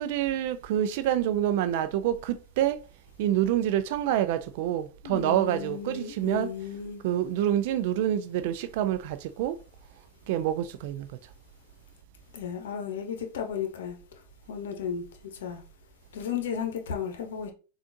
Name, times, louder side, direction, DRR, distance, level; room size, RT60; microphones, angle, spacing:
voice 1, 0.0-2.8 3.2-6.5 7.0-9.5 10.3-11.1, right 11 dB, 65° right, 0.3 m, -27 dB
voice 2, 5.0-7.0 12.3-14.0 14.5-15.6 16.1-17.5, left 7 dB, 75° left, 0.8 m, -34 dB
3.6 x 2.4 x 2.6 m
hypercardioid pair, 105°, 0 cm